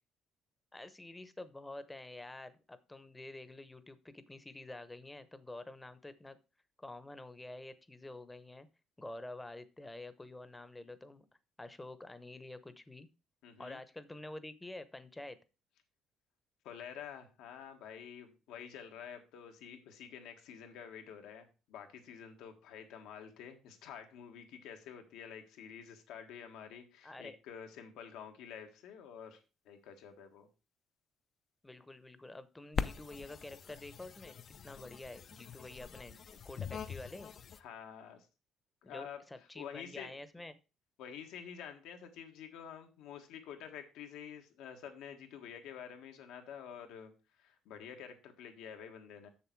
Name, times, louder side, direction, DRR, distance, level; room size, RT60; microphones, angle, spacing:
voice 1, 0.7-6.4 6.8-8.7 9.0-11.3 11.6-13.1 13.6-15.4 27.0-27.4 31.6-34.4 34.6-37.3 38.8-40.5, left 2 dB, 10° left, 13 dB, 0.8 m, -48 dB
voice 2, 13.4-13.8 16.6-29.4 29.6-30.5 34.8-35.0 37.6-38.3 38.8-39.2 39.5-40.1 41.0-49.3, left 8 dB, 90° left, 5 dB, 1.6 m, -49 dB
sound 1, 32.7-37.6, left 7 dB, 45° left, 0.6 m, -42 dB
6.9 x 6.9 x 4.6 m, 0.31 s
cardioid pair, 120°, 0 cm